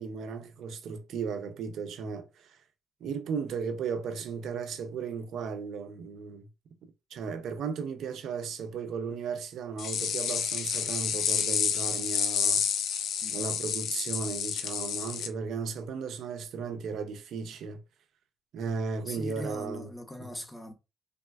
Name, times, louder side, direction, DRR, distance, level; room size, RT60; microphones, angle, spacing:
voice 1, 0.0-2.6 3.0-6.5 7.1-12.6 13.3-17.8 18.5-19.9, right 5 dB, 75° right, 0.5 m, -35 dB
sound 1, 9.8-15.3, left 8 dB, 75° left, 0.3 m, -29 dB
voice 2, 13.2-13.6 19.0-20.7, left 1 dB, 10° left, 0.7 m, -41 dB
3.4 x 2.1 x 2.3 m
cardioid pair, 90°, 0 cm